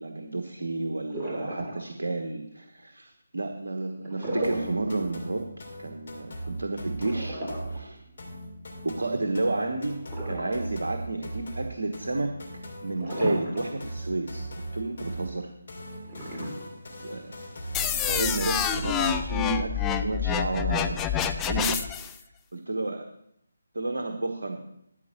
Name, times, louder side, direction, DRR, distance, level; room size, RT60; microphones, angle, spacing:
voice 1, 0.0-7.4 7.7-8.0 8.8-12.3 12.8-15.5 17.0-17.3 17.8-21.1 21.5-21.8 22.2-22.3 22.5-23.1 23.7-24.6, right 2 dB, 65° right, 5 dB, 1.2 m, -31 dB
sound 1, 1.1-2.1 4.0-4.8 5.2-5.3 7.0-8.5 10.0-10.9 11.4-11.5 13.0-13.9 14.3-14.4 16.0-17.1, right 1 dB, 15° right, 3.2 m, -34 dB
sound 2, 4.4-19.5, right 1 dB, 55° left, 3.4 m, -39 dB
sound 3, 17.7-22.1, left 8 dB, 10° left, 0.5 m, -27 dB
13.5 x 5.2 x 7.2 m, 0.75 s
figure-of-eight pair, 150°, 0 cm